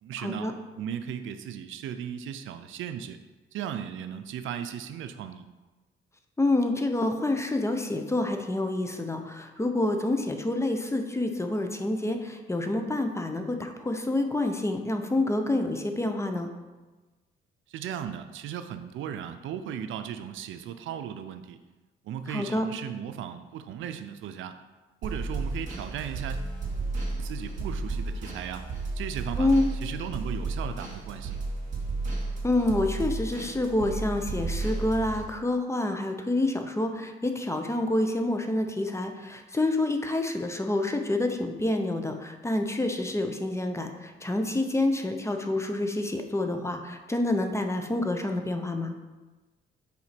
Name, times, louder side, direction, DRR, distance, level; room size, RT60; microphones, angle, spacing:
voice 1, 0.0-3.2 3.5-5.5 17.7-21.6 22.0-24.6 25.0-26.4 27.2-28.6 29.0-31.4, right 9 dB, 80° right, 9 dB, 0.5 m, -36 dB
voice 2, 6.4-16.5 22.3-22.6 29.4-29.7 32.4-48.9, left 2 dB, 15° left, 5 dB, 0.8 m, -28 dB
sound 1, 25.0-35.2, right 3 dB, 40° right, 2.4 m, -33 dB
5.8 x 4.3 x 5.9 m, 1.2 s
cardioid pair, 90°, 20 cm